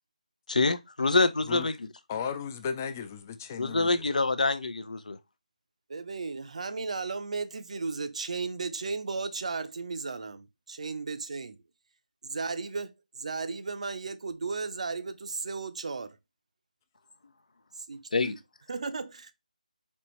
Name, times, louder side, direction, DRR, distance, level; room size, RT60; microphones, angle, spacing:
voice 1, 0.5-1.7 3.6-5.2 18.1-18.4, left 3 dB, 65° left, 0.6 m, -26 dB
voice 2, 1.4-1.7 2.1-4.1, left 6 dB, 20° left, 0.4 m, -35 dB
voice 3, 5.9-11.6 12.2-16.2 17.7-18.4 18.7-19.3, right 4 dB, 50° right, 0.5 m, -35 dB
4.4 x 2.9 x 3.0 m
figure-of-eight pair, 160°, 4 cm